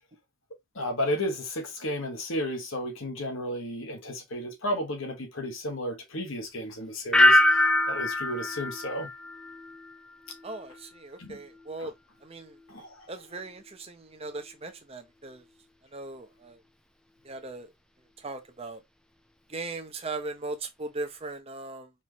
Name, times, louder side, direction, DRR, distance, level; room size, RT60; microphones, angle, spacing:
voice 1, 0.7-9.1 11.2-11.4 11.8-11.9 12.7-13.1, equal, 60° left, 1.3 m, -33 dB
sound 1, 7.1-10.0 10.3-10.8, left 1 dB, 5° left, 0.4 m, -23 dB
voice 2, 10.4-11.9 12.2-12.6 13.1-15.4 15.9-16.6 17.2-17.7 18.2-18.8 19.5-21.9, right 3 dB, 25° right, 0.7 m, -38 dB
4.4 x 3.1 x 2.8 m
head